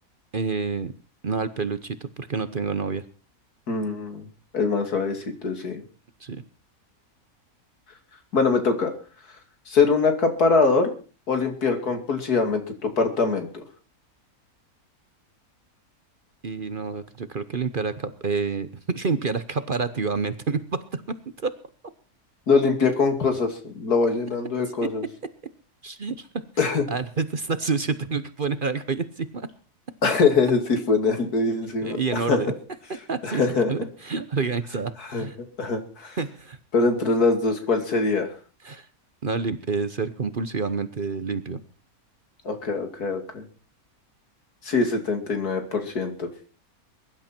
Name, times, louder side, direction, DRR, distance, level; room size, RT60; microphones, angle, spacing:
voice 1, 0.3-0.9 1.2-3.0 6.2-6.4 16.4-21.2 21.4-21.5 24.8-24.9 25.8-26.3 26.9-29.5 31.8-32.5 33.1-33.4 33.7-35.4 36.2-36.6 38.6-38.9 39.2-41.6, right 4 dB, 40° right, 12 dB, 0.9 m, -28 dB
voice 2, 3.7-4.3 4.5-5.8 8.3-8.9 9.7-10.9 11.3-13.6 22.5-25.0 26.6-26.8 30.0-32.4 33.2-33.9 35.0-35.3 35.6-36.2 36.7-38.3 42.4-43.4 44.6-46.3, left 4 dB, 90° left, 5 dB, 3.0 m, -23 dB
22.0 x 11.5 x 4.5 m, 0.38 s
omnidirectional pair, 1.6 m